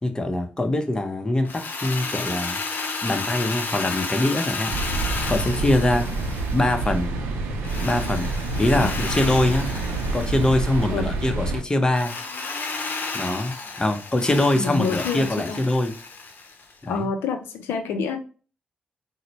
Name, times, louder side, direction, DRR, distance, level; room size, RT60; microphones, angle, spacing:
voice 1, 0.0-2.6 3.0-4.8 5.3-6.1 6.5-7.1 7.8-9.8 10.1-12.2 13.1-15.9 16.8-17.1, left 1 dB, 20° left, 0.7 m, -23 dB
Drill, 1.4-7.0 7.6-10.9 11.9-16.7, left 3 dB, 55° left, 0.7 m, -32 dB
sound 1, 4.7-11.6, right 3 dB, 85° right, 0.5 m, -27 dB
voice 2, 14.5-15.6 16.8-18.2, left 5 dB, 85° left, 0.4 m, -28 dB
4.0 x 2.1 x 2.9 m
supercardioid pair, 45°, 4 cm